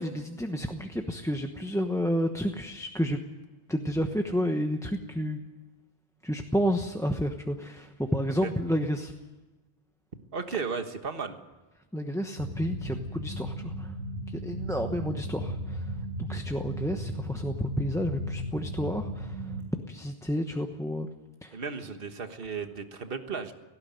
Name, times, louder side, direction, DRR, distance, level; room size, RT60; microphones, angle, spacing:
voice 1, 0.0-3.2 3.7-5.4 6.2-9.1 11.9-13.9 14.3-15.9 16.2-19.5 19.9-21.1 21.4-21.5, equal, 5° left, 5 dB, 1.0 m, -30 dB
voice 2, 10.3-11.4 16.3-16.4 21.5-23.5, right 5 dB, 55° right, 8 dB, 1.6 m, -35 dB
sound 1, 12.4-19.6, equal, 85° right, 6.0 m, -36 dB
18.0 x 16.5 x 9.3 m, 1.2 s
omnidirectional pair, 1.1 m